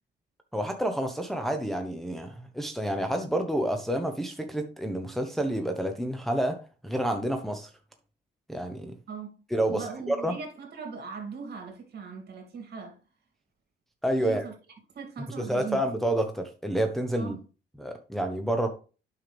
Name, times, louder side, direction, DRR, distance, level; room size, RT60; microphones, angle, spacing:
voice 1, 0.5-6.6 6.8-7.7 8.5-8.9 9.5-10.3 14.0-14.4 15.4-17.4 17.8-18.7, right 1 dB, ahead, 1.0 m, -29 dB
voice 2, 9.1-13.0 14.2-14.5 14.9-15.9 17.2-17.4, right 5 dB, 55° right, 2.7 m, -39 dB
8.8 x 5.8 x 3.4 m
cardioid pair, 90°, 20 cm